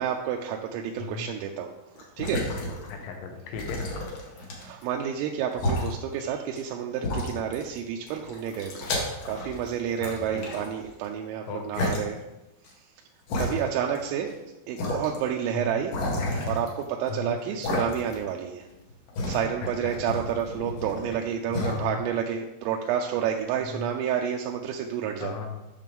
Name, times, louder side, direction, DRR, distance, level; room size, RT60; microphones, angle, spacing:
voice 1, 0.0-1.7 2.2-2.5 4.6-8.9 9.3-12.2 12.8-12.9 13.4-14.3 14.7-15.9 16.4-18.7 19.3-25.4, right 8 dB, 85° right, 1 dB, 3.2 m, -30 dB
sound 1, 2.0-3.1 3.5-4.9 5.5-5.9 6.6-6.7 7.0-7.8 8.1-9.7 10.0-11.1 11.7-12.0 12.6-12.7 13.3-14.0 14.3-14.4 14.8-15.2 15.9-17.1 17.6-18.3 18.6-21.2 21.5-21.8, left 1 dB, 60° left, 2.5 m, -31 dB
voice 2, 2.9-3.8 10.0-10.4 11.5-12.0 13.4-13.7 15.5-15.8 17.1-17.4 19.8-19.9 21.5-22.0 23.7-23.9 25.2-25.7, left 5 dB, 75° left, 3 dB, 3.3 m, -36 dB
10.5 x 6.6 x 3.6 m, 0.98 s
omnidirectional pair, 5.9 m